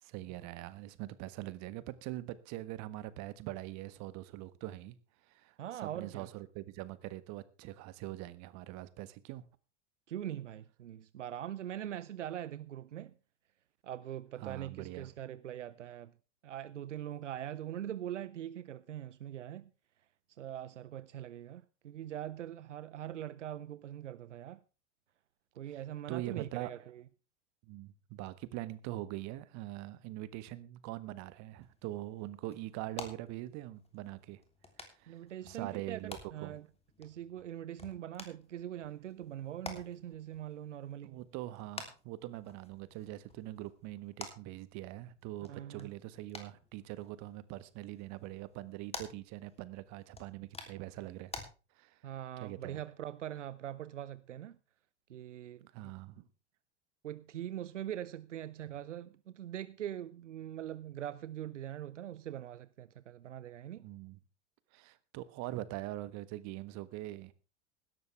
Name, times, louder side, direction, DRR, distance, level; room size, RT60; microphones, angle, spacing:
voice 1, 0.0-5.0 5.3-9.4 14.4-15.1 25.7-25.8 26.1-26.8 27.6-34.4 35.0-35.2 35.4-36.6 41.0-51.3 51.7-52.0 52.4-52.8 55.7-56.2 63.8-64.2 64.7-67.3, right 16 dB, 50° right, 1.4 m, -43 dB
voice 2, 5.6-6.3 10.1-13.1 13.8-16.1 16.4-19.7 20.4-24.6 25.6-27.0 35.1-36.7 37.0-41.2 45.5-45.9 52.0-54.6 55.1-55.7 57.0-63.9, right 11 dB, 85° right, 0.7 m, -42 dB
sound 1, 31.6-51.5, left 3 dB, 15° left, 3.3 m, -51 dB
16.5 x 12.5 x 3.4 m
hypercardioid pair, 80°, 35 cm